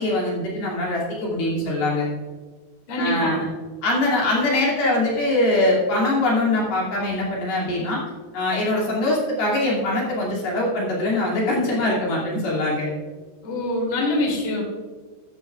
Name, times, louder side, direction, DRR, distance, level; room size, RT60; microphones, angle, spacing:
voice 1, 0.0-2.1 3.0-3.5 3.8-8.0 8.3-12.9, left 2 dB, 60° left, -4 dB, 4.4 m, -22 dB
voice 2, 2.9-3.4 13.4-14.6, left 1 dB, 30° left, -1 dB, 3.1 m, -24 dB
13.5 x 13.0 x 2.5 m, 1.4 s
omnidirectional pair, 5.2 m